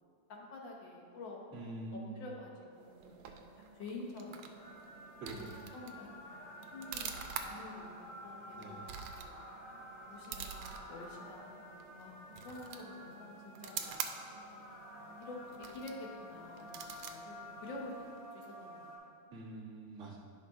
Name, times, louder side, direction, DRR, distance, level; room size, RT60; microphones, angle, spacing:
voice 1, 0.3-1.4 1.9-2.5 2.8-4.5 5.7-9.4 9.7-13.9 15.0-15.4 15.7-18.1 18.3-19.1, left 2 dB, 65° left, -1 dB, 1.6 m, -49 dB
voice 2, 1.5-2.2 5.2-5.6 8.6-8.9 19.3-20.2, right 2 dB, 40° right, -6 dB, 1.6 m, -45 dB
sound 1, 2.7-18.3, right 7 dB, 90° right, 1.5 m, -48 dB
sound 2, 4.6-19.0, left 1 dB, 80° left, 2.5 m, -51 dB
9.9 x 5.8 x 3.6 m, 2.4 s
omnidirectional pair, 2.3 m